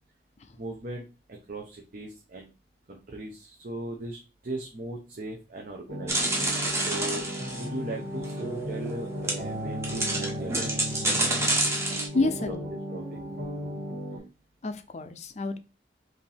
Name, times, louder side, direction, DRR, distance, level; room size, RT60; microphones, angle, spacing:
voice 1, 0.6-2.5 2.9-6.2 6.5-11.2 11.9-12.6 12.9-13.2, right 1 dB, 50° right, 0 dB, 0.7 m, -38 dB
sound 1, 5.9-14.2, equal, 85° right, 1.7 m, -35 dB
sound 2, 6.1-7.7 8.2-8.3 8.8-8.9 9.2-9.4 9.8-12.1, right 1 dB, 15° right, 0.9 m, -28 dB
voice 2, 12.1-12.7 14.6-15.6, left 2 dB, 40° left, 9 dB, 0.5 m, -29 dB
5.0 x 2.7 x 3.4 m, 0.30 s
head